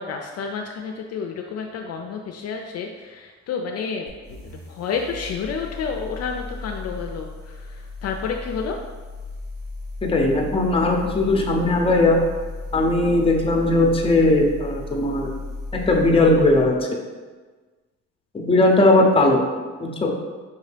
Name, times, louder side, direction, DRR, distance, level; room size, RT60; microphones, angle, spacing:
voice 1, 0.0-8.8, left 5 dB, 55° left, 2 dB, 0.4 m, -30 dB
sound 1, 4.1-16.7, left 2 dB, 70° right, 1.1 m, -35 dB
voice 2, 10.0-12.2 12.7-15.3 15.9-16.7 18.3-19.4 19.8-20.1, left 2 dB, 20° left, 0 dB, 0.7 m, -18 dB
5.1 x 2.7 x 3.3 m, 1.4 s
cardioid pair, 90°, 30 cm